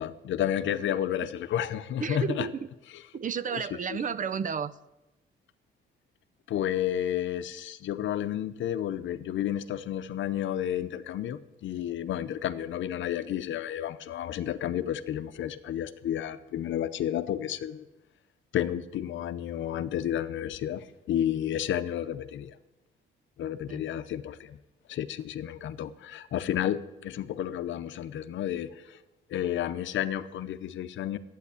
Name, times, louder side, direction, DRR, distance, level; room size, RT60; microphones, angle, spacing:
voice 1, 0.0-2.5 2.9-3.0 3.5-4.0 6.5-17.9 18.5-22.6 23.4-24.6 24.9-29.0 29.3-31.2, left 11 dB, 70° left, 13 dB, 0.8 m, -31 dB
voice 2, 2.0-2.7 3.1-4.8 23.7-23.8, right 6 dB, 40° right, 17 dB, 0.6 m, -32 dB
12.0 x 9.2 x 8.4 m, 1.0 s
cardioid pair, 90°, 20 cm